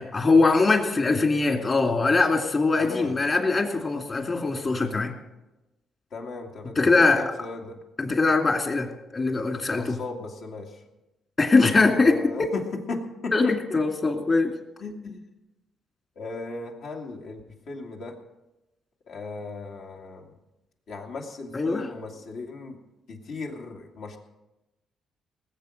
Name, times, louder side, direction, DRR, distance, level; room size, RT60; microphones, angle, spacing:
voice 1, 0.0-5.1 6.8-7.3 8.0-10.0 11.4-12.3 13.3-14.5 21.5-21.9, left 3 dB, 35° left, 4 dB, 2.4 m, -22 dB
voice 2, 2.8-3.1 6.1-6.9 7.2-7.8 9.7-10.8 12.0-13.8 14.8-15.2 16.2-17.4 17.7-18.2 19.1-20.3 20.9-22.8 23.1-24.2, left 3 dB, 70° left, 1 dB, 2.4 m, -36 dB
19.5 x 7.7 x 6.5 m, 1.0 s
cardioid pair, 90°, 0 cm